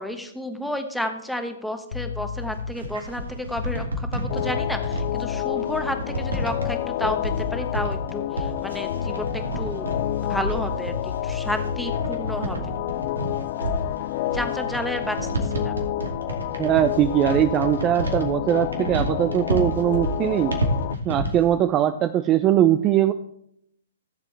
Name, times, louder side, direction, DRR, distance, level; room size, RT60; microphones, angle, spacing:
voice 1, 0.0-9.9 10.3-12.7 14.3-15.7, left 1 dB, ahead, 6 dB, 1.1 m, -31 dB
sound 1, 1.9-2.9 3.5-5.5 6.2-7.0 7.2-8.2 8.9-12.5, left 5 dB, 65° left, 0.7 m, -33 dB
sound 2, 2.4-21.5, right 1 dB, 85° right, 2.3 m, -30 dB
sound 3, 4.3-21.0, left 16 dB, 45° left, 0.3 m, -30 dB
voice 2, 16.6-20.5 21.1-23.1, right 11 dB, 25° right, 11 dB, 0.5 m, -21 dB
15.5 x 7.5 x 3.3 m, 0.73 s
hypercardioid pair, 130°, 0 cm